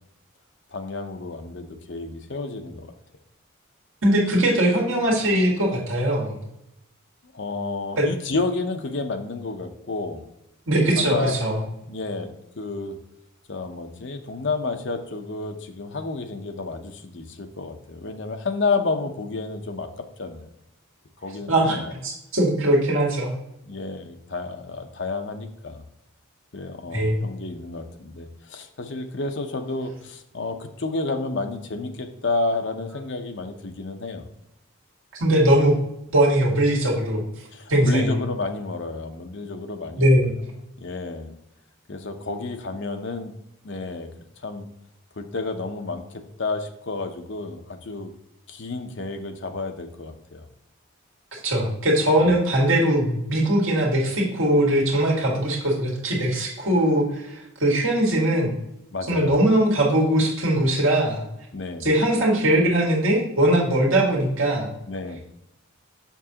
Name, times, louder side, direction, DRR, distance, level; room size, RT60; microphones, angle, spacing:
voice 1, 0.7-2.9 7.3-10.3 11.0-11.4 11.8-13.0 13.5-20.5 21.2-21.9 23.6-25.8 26.5-34.3 37.5-40.2 40.8-41.3 41.9-43.4 43.6-44.7 45.2-48.1 48.5-50.5 52.2-52.4 58.9-59.4 61.5-61.9 64.9-65.2, left 3 dB, 55° left, 6 dB, 0.7 m, -30 dB
voice 2, 4.0-6.4 8.0-8.1 10.7-11.6 21.5-21.8 22.0-23.4 26.9-27.2 35.1-35.8 36.1-37.2 37.7-38.2 40.0-40.4 51.3-58.5 59.1-61.2 61.8-64.7, right 1 dB, 75° right, -2 dB, 1.9 m, -20 dB
7.1 x 6.1 x 2.8 m, 0.84 s
head